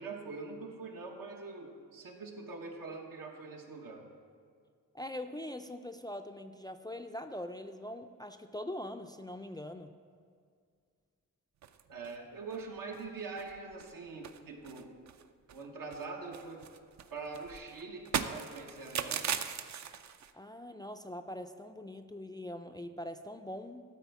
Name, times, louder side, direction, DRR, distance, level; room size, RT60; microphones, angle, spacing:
voice 1, 0.0-4.1 11.9-14.9 15.5-16.6 17.1-19.4, right 4 dB, 80° right, 1 dB, 1.3 m, -43 dB
voice 2, 4.9-9.9 20.3-23.8, left 1 dB, 15° left, 7 dB, 0.3 m, -42 dB
sound 1, 11.6-12.2 12.5-12.6 12.9-13.1 13.4-13.9 14.2-15.7 15.9-20.3, right 8 dB, 55° right, 0.5 m, -39 dB
12.5 x 4.4 x 7.0 m, 2.1 s
wide cardioid pair, 110°, 33 cm